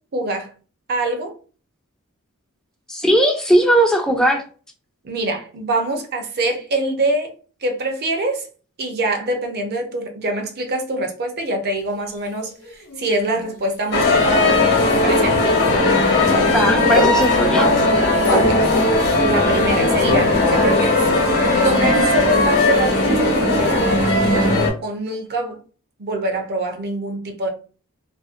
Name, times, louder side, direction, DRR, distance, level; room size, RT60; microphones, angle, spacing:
voice 1, 0.1-0.5 0.9-1.4 5.0-7.3 7.6-8.5 8.8-15.4 18.3-18.7 19.2-21.0 21.6-24.5 24.8-25.6 26.0-27.5, right 2 dB, 45° right, 0.6 m, -24 dB
voice 2, 2.9-4.4 16.4-17.7, right 1 dB, 5° left, 0.4 m, -18 dB
sound 1, 11.9-12.2 12.4-18.7, left 2 dB, 80° left, 0.6 m, -27 dB
sound 2, 13.9-24.7, left 2 dB, 50° left, 0.9 m, -17 dB
2.5 x 2.0 x 2.4 m
head